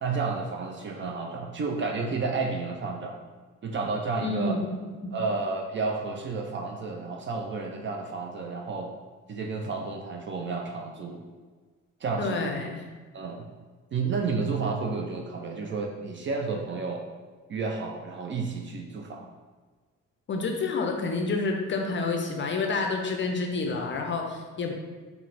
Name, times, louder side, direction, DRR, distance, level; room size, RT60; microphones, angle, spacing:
voice 1, 0.0-3.2 3.6-4.6 5.1-8.9 9.3-11.2 12.0-12.6 13.1-13.5 13.9-17.1 17.5-19.3, right 4 dB, 30° right, 1 dB, 0.5 m, -31 dB
voice 2, 4.2-5.1 12.2-12.8 20.3-24.7, left 3 dB, 30° left, 2 dB, 0.6 m, -29 dB
3.8 x 2.1 x 4.1 m, 1.4 s
figure-of-eight pair, 40°, 38 cm